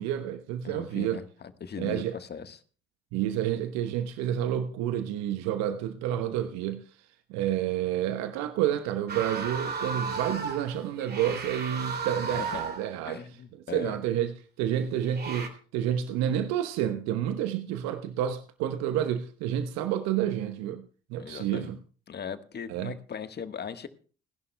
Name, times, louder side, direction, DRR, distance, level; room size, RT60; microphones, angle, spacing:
voice 1, 0.0-1.2 1.8-2.1 3.1-6.8 7.3-13.2 13.7-14.3 14.6-20.8 21.1-21.8 22.7-22.9, right 10 dB, 65° right, 1.0 m, -29 dB
voice 2, 0.6-2.6 12.3-12.6 13.0-14.0 21.2-21.7 22.1-23.9, left 7 dB, 35° left, 1.3 m, -39 dB
sound 1, 9.1-12.9 15.0-15.5, right 5 dB, 35° right, 2.7 m, -34 dB
30.0 x 11.0 x 2.2 m
hypercardioid pair, 55°, 29 cm